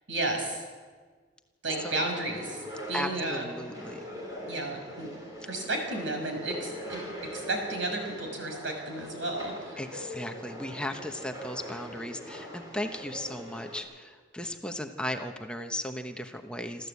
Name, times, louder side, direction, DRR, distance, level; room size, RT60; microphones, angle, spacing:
voice 1, 0.1-0.6 1.6-3.5 4.5-5.1 5.5-7.0 7.3-9.8, right 2 dB, 75° right, 3 dB, 6.0 m, -33 dB
sound 1, 1.7-13.8, equal, 20° right, 4.9 m, -42 dB
voice 2, 2.9-4.1 9.8-16.9, left 1 dB, 5° left, 5 dB, 1.0 m, -36 dB
27.5 x 14.0 x 8.4 m, 1.5 s
head